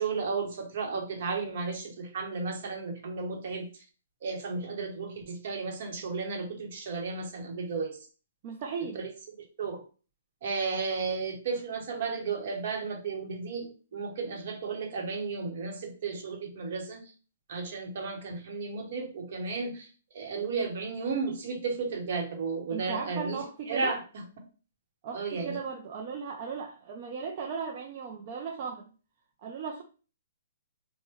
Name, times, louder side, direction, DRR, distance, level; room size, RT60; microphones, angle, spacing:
voice 1, 0.0-3.7 4.2-8.0 8.9-9.1 9.6-9.8 10.4-17.0 17.5-24.2 25.1-25.6, right 4 dB, 50° right, 3 dB, 0.9 m, -33 dB
voice 2, 8.4-9.0 22.7-24.0 25.0-28.9 29.4-29.8, right 6 dB, 35° right, 0 dB, 0.4 m, -36 dB
3.3 x 2.1 x 3.1 m, 0.36 s
hypercardioid pair, 165°, 0 cm